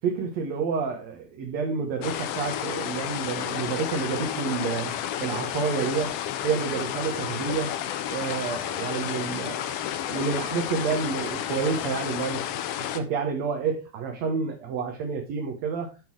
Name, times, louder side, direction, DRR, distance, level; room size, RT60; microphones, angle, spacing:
voice 1, 0.0-4.9 5.2-6.2 6.4-7.7 8.1-9.8 10.1-12.4 12.8-15.9, right 5 dB, 65° right, 2.2 m, -29 dB
sound 1, 2.0-13.0, left 11 dB, 80° left, 1.4 m, -31 dB
10.5 x 3.8 x 4.6 m
omnidirectional pair, 3.5 m